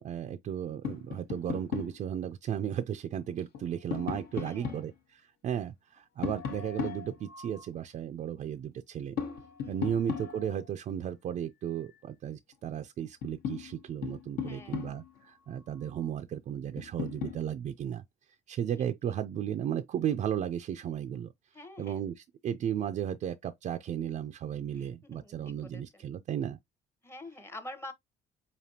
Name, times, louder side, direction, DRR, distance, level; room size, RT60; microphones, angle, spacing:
voice 1, 0.0-9.2 9.7-18.0 18.5-21.3 21.8-26.6, right 9 dB, 45° right, 0.4 m, -35 dB
Tap, 0.8-2.0 3.4-4.9 6.2-7.7 9.2-10.7 12.5-12.6 13.0-15.2 16.8-17.4, left 7 dB, 65° left, 1.0 m, -37 dB
voice 2, 4.3-4.8 9.6-9.9 14.4-14.9 18.5-18.6 21.5-22.0 24.8-26.0 27.0-27.9, left 2 dB, 15° left, 0.8 m, -47 dB
5.0 x 2.6 x 2.8 m
cardioid pair, 110°, 17 cm